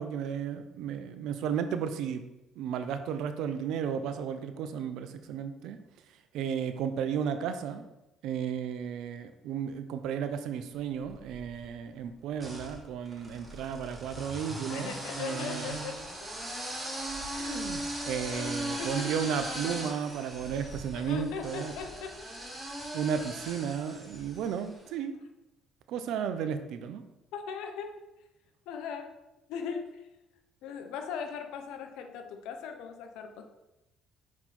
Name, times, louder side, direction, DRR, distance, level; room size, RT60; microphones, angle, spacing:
voice 1, 0.0-2.2 2.6-5.8 6.3-7.8 8.2-15.8 17.3-21.7 22.9-25.1 25.9-27.0, right 7 dB, 75° right, 9 dB, 0.6 m, -34 dB
sound 1, 11.0-11.7 12.4-24.7, right 1 dB, 15° right, 2.4 m, -39 dB
voice 2, 14.7-16.0 18.3-18.5 18.8-19.1 20.5-22.2 27.3-28.0 28.7-29.1 29.5-30.1 30.6-33.4, left 6 dB, 80° left, 6 dB, 0.8 m, -39 dB
5.9 x 4.3 x 4.2 m, 0.95 s
supercardioid pair, 70°, 0 cm